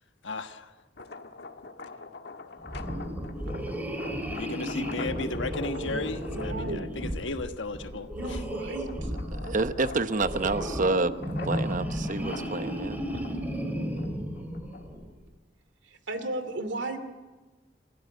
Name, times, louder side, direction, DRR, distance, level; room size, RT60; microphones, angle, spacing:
voice 1, 0.2-0.7 4.3-8.1, left 3 dB, 85° left, 8 dB, 1.4 m, -34 dB
sound 1, 0.8-7.4 7.9-15.1, left 3 dB, 60° left, 1.5 m, -45 dB
sound 2, 2.6-15.1, equal, 10° right, 3.4 m, -34 dB
voice 2, 5.7-6.9 8.1-9.1 13.1-13.2 15.8-17.0, right 2 dB, 75° right, 10 dB, 2.5 m, -36 dB
voice 3, 9.4-11.1 11.4-13.0, right 3 dB, 45° right, 11 dB, 0.9 m, -28 dB
29.0 x 16.0 x 9.3 m, 1.3 s
head